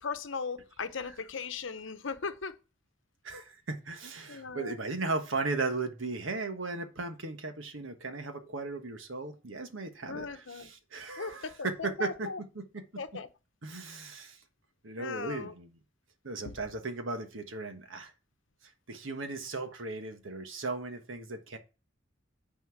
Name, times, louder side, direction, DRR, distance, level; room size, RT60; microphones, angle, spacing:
voice 1, 0.0-2.6 4.3-4.8 10.1-10.7 11.2-12.4 13.0-13.3 15.0-15.5 16.5-16.6, left 4 dB, 75° left, 0.8 m, -38 dB
voice 2, 3.2-12.8 13.6-14.4 14.8-15.7 16.2-18.1 18.6-21.6, right 3 dB, 85° right, 1.4 m, -37 dB
9.6 x 4.5 x 5.8 m
head